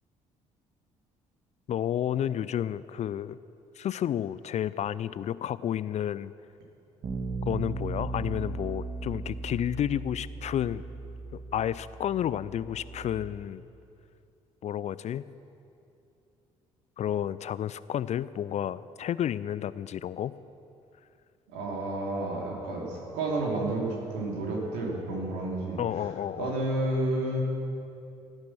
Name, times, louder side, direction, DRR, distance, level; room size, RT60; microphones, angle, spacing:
voice 1, 1.7-3.4 3.8-6.3 7.5-10.8 11.3-13.6 14.6-15.2 17.0-20.3 25.8-26.6, left 10 dB, 45° left, 17 dB, 0.4 m, -31 dB
Bass guitar, 7.0-13.3, right 3 dB, 50° right, 2.5 m, -37 dB
voice 2, 21.5-25.8 26.4-27.4, right 2 dB, 70° right, -2 dB, 3.0 m, -30 dB
17.5 x 10.5 x 6.0 m, 2.7 s
figure-of-eight pair, 50°, 17 cm